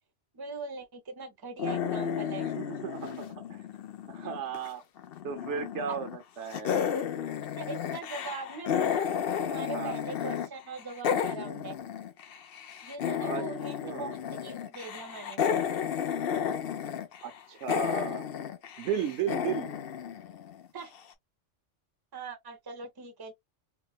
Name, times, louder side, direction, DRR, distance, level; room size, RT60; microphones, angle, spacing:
voice 1, 0.3-2.5 5.9-6.0 7.6-8.7 9.4-11.8 12.8-15.4 20.7-20.9 22.1-23.3, right 4 dB, 25° right, 0.7 m, -41 dB
sound 1, 1.6-4.7 5.0-6.2 6.5-10.5 10.7-20.8, left 8 dB, 60° left, 0.8 m, -33 dB
voice 2, 2.4-3.6 4.1-4.8 5.2-7.0 9.7-10.0 13.2-13.5 13.8-14.2 17.2-18.3 18.8-19.7, right 7 dB, 75° right, 1.0 m, -35 dB
4.4 x 2.1 x 2.3 m
omnidirectional pair, 1.2 m